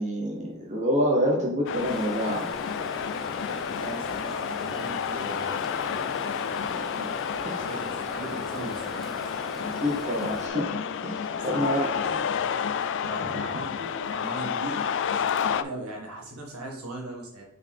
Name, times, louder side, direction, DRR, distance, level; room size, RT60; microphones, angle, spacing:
voice 1, 0.0-2.4 7.0-7.1 7.4-7.6 9.8-11.9, equal, 35° right, -2 dB, 1.0 m, -27 dB
sound 1, 1.7-15.6, left 7 dB, 55° left, 0.4 m, -30 dB
Stream, 1.7-10.5, equal, ahead, 1.0 m, -41 dB
voice 2, 3.6-6.1 7.6-9.3 11.3-17.4, right 1 dB, 80° right, -1 dB, 1.9 m, -39 dB
6.4 x 4.6 x 3.4 m, 0.70 s
head